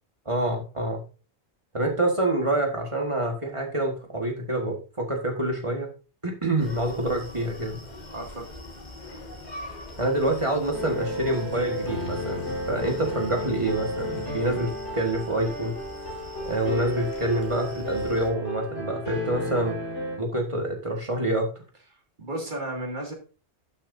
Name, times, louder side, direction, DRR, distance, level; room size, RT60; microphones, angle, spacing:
voice 1, 0.2-1.0 1.7-5.9 6.2-7.8 10.0-15.8 16.4-19.8 20.2-21.5, right 1 dB, 25° right, 2 dB, 1.6 m, -27 dB
Screaming, 6.6-18.3, left 1 dB, 40° left, 1.9 m, -42 dB
voice 2, 8.1-8.5 22.2-23.1, right 1 dB, 45° right, 0 dB, 2.3 m, -33 dB
sound 1, 10.7-20.2, left 1 dB, 85° left, 4.9 m, -33 dB
11.5 x 6.6 x 2.6 m, 0.35 s
omnidirectional pair, 1.2 m